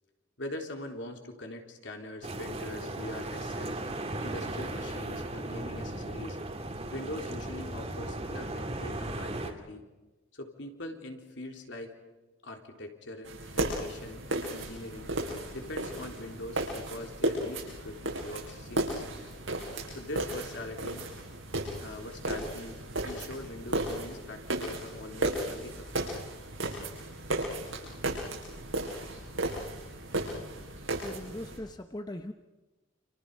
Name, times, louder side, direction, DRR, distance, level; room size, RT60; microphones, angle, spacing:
voice 1, 0.4-3.7 4.2-6.4 6.9-9.8 10.3-12.0 12.4-15.1 15.5-19.2 19.9-21.1 21.8-26.3, left 1 dB, 65° left, 3 dB, 3.8 m, -42 dB
sound 1, 2.2-9.5, right 1 dB, 30° right, 2.5 m, -36 dB
sound 2, 13.2-31.6, right 1 dB, 90° right, 6.7 m, -35 dB
voice 2, 31.0-32.3, left 1 dB, 20° left, 7 dB, 1.0 m, -40 dB
30.0 x 28.5 x 5.5 m, 1.1 s
head